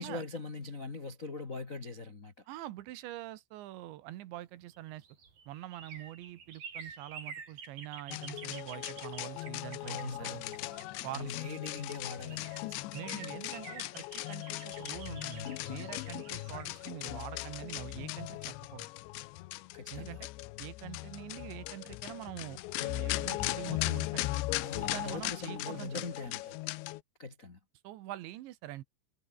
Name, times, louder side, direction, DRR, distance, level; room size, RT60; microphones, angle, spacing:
voice 1, 0.0-2.5 9.8-12.9 19.7-20.2 24.6-26.6 27.2-27.6, left 3 dB, 65° left, 0.8 m, -42 dB
voice 2, 2.5-5.1 5.5-10.4 11.0-11.3 12.9-18.9 19.9-20.3 20.6-24.3 24.8-26.0 27.8-28.8, right 15 dB, 80° right, 3.4 m, -44 dB
sound 1, 4.6-11.4 12.0-12.1 12.3-18.1 18.4-18.5, right 6 dB, 50° right, 5.8 m, -50 dB
sound 2, 8.1-27.0, left 19 dB, 80° left, 3.0 m, -38 dB
omnidirectional pair, 5.3 m